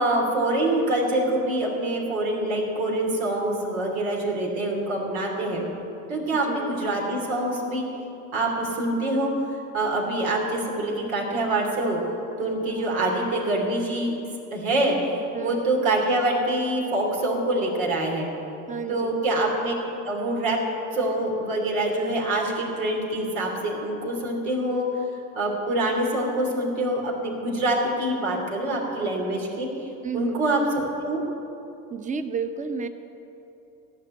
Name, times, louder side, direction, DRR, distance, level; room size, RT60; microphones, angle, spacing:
voice 1, 0.0-5.6 6.1-7.8 8.3-9.3 9.7-12.0 12.4-14.1 14.5-18.3 18.9-19.7 20.0-20.6 20.9-24.9 25.3-31.2, right 1 dB, 85° right, -1 dB, 3.1 m, -25 dB
voice 2, 18.7-19.1 30.0-30.4 31.9-32.9, right 5 dB, 20° right, 9 dB, 0.8 m, -31 dB
15.5 x 5.8 x 9.5 m, 2.9 s
hypercardioid pair, 90°, 40 cm